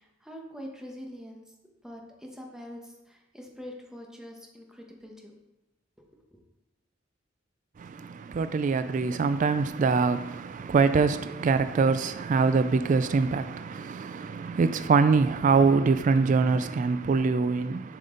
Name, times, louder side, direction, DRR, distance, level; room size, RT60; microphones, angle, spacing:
voice 1, 0.0-1.4 1.8-5.3 6.1-6.4, equal, 5° right, 1.1 m, -44 dB
voice 2, 8.3-17.8, right 4 dB, 40° right, 0.3 m, -24 dB
7.7 x 5.3 x 3.8 m
head